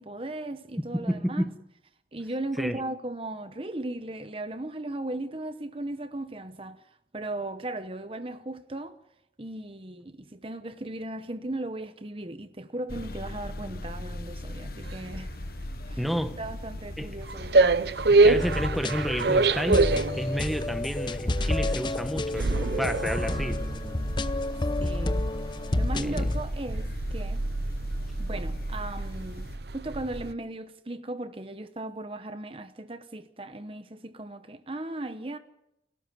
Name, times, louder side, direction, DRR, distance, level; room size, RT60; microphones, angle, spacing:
voice 1, 0.0-1.4 2.1-6.8 7.1-9.0 9.4-15.3 15.9-16.0 16.4-17.6 24.8-25.2 25.8-27.4 28.2-35.4, right 2 dB, 30° right, 0.9 m, -37 dB
voice 2, 0.8-1.6 2.6-2.8 16.0-16.4 17.0-17.2 18.1-24.0 25.9-26.4, equal, ahead, 1.1 m, -31 dB
sound 1, 12.9-29.6, left 1 dB, 55° left, 1.2 m, -40 dB
sound 2, 14.8-30.3, right 3 dB, 65° right, 0.8 m, -27 dB
sound 3, 18.2-26.4, left 1 dB, 25° left, 0.8 m, -30 dB
30.0 x 12.5 x 9.3 m
head